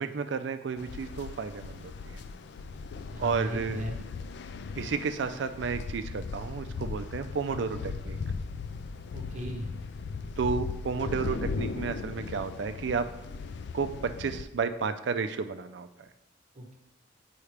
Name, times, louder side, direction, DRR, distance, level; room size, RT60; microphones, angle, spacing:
voice 1, 0.0-2.2 3.2-3.8 4.8-8.2 10.4-13.1 13.7-15.9, right 5 dB, 65° right, 9 dB, 0.4 m, -32 dB
sound 1, 0.8-14.4, left 4 dB, 60° left, 0.3 m, -38 dB
voice 2, 3.1-4.0 7.5-7.7 9.1-9.7 16.5-16.8, right 1 dB, 40° right, 0 dB, 1.1 m, -37 dB
8.4 x 4.7 x 3.3 m, 0.91 s
head